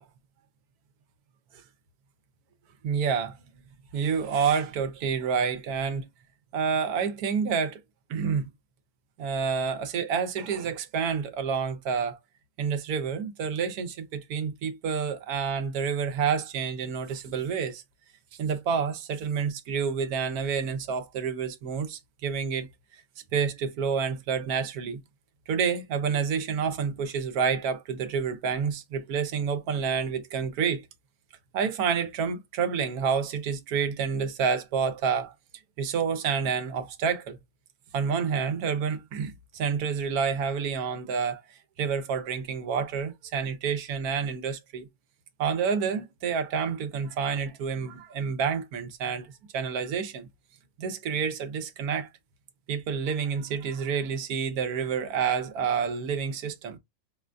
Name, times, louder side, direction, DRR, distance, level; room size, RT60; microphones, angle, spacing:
voice 1, 2.8-3.4 3.9-6.1 6.5-7.8 8.1-8.5 9.2-12.2 12.6-17.8 18.4-22.7 23.3-25.0 25.5-30.8 31.5-35.3 35.8-37.4 37.9-41.4 41.8-44.9 45.4-50.3 50.8-52.1 52.7-56.8, right 6 dB, 85° right, 1.2 m, -28 dB
4.9 x 2.5 x 2.2 m
omnidirectional pair, 1.6 m